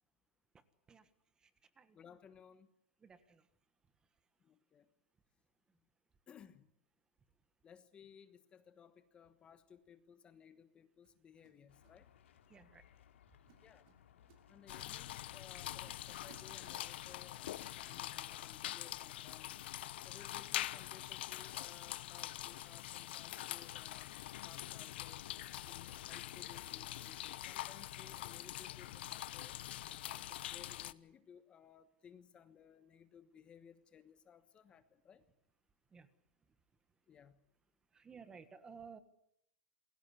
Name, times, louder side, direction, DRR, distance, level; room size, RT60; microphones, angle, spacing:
voice 1, 1.9-2.7 4.4-4.9 6.3-6.7 7.6-12.1 13.6-13.8 14.5-19.5 20.0-24.1 24.4-25.2 25.7-29.6 30.1-35.2 37.1-37.4, left 7 dB, 15° left, 11 dB, 1.2 m, -60 dB
voice 2, 3.0-3.5 12.5-12.8 16.3-16.4 23.7-23.8 24.2-24.3 35.9-36.1 37.9-39.0, right 6 dB, 10° right, 13 dB, 1.5 m, -56 dB
sound 1, 9.7-9.9 11.0-12.0 12.3-12.6 13.0-13.2 13.5-15.0 15.4-15.5 15.9-17.2, right 7 dB, 40° right, 6.2 m, -66 dB
sound 2, 11.7-17.4, left 9 dB, 85° left, 3.8 m, -65 dB
sound 3, 14.7-30.9, left 14 dB, 60° left, 1.0 m, -44 dB
28.5 x 22.0 x 8.3 m, 0.74 s
supercardioid pair, 165°, 7 cm